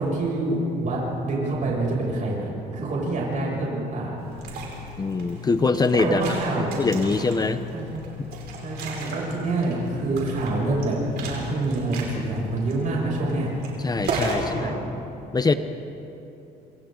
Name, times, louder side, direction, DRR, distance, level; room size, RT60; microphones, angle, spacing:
voice 1, 0.0-4.3 6.0-6.8 7.7-7.8 8.6-13.5 14.4-14.8, right 2 dB, 50° right, -4 dB, 7.1 m, -26 dB
Liquid, 4.2-14.5, right 1 dB, 70° right, 5.5 m, -34 dB
voice 2, 5.0-6.4 6.8-7.6 13.8-14.7 15.3-15.5, left 4 dB, 25° left, 10 dB, 0.9 m, -23 dB
27.5 x 27.0 x 4.0 m, 2.9 s
cardioid pair, 110°, 17 cm